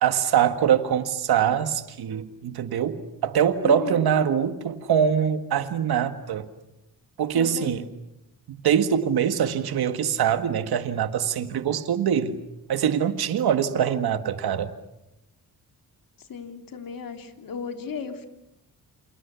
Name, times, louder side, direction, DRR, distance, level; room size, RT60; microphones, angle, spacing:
voice 1, 0.0-6.5 7.2-7.8 8.5-12.4 12.7-14.7, right 8 dB, 90° right, 1.9 m, -23 dB
voice 2, 3.6-4.0 7.3-7.8 16.2-18.3, left 6 dB, 65° left, 3.3 m, -35 dB
29.0 x 28.0 x 7.0 m
cardioid pair, 110°, 37 cm